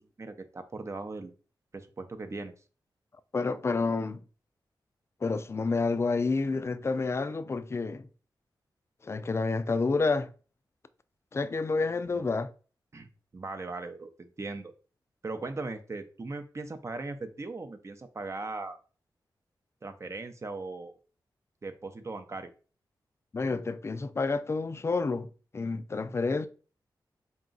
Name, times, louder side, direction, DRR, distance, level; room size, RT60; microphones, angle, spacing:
voice 1, 0.2-1.3 1.7-2.5 12.1-12.3 12.9-13.1 13.3-14.7 15.2-18.8 19.8-20.9 21.6-22.5, right 3 dB, 35° right, 0.6 m, -39 dB
voice 2, 3.3-4.2 5.2-8.1 9.0-10.3 11.3-12.5 23.3-26.5, left 3 dB, 35° left, 0.4 m, -29 dB
3.9 x 2.3 x 3.8 m
cardioid pair, 75°, 8 cm